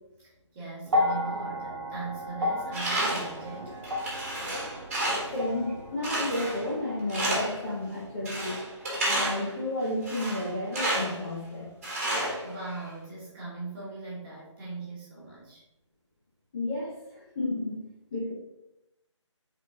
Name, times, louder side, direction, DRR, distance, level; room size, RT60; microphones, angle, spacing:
voice 1, 0.2-3.7 12.0-15.6, right 3 dB, 10° right, -8 dB, 1.0 m, -40 dB
sound 1, 0.9-9.2 10.3-10.4, left 2 dB, 60° right, 0.8 m, -34 dB
Tools, 2.7-3.4 3.8-5.4 6.0-6.7 7.1-7.7 8.2-9.5 10.0-11.2 11.8-12.9, right 1 dB, 25° right, 1.3 m, -31 dB
voice 2, 5.3-8.6 9.0-11.7 16.5-17.8 18.1-18.3, left 1 dB, 10° left, -8 dB, 0.4 m, -32 dB
3.9 x 3.5 x 3.7 m, 0.87 s
figure-of-eight pair, 155°, 16 cm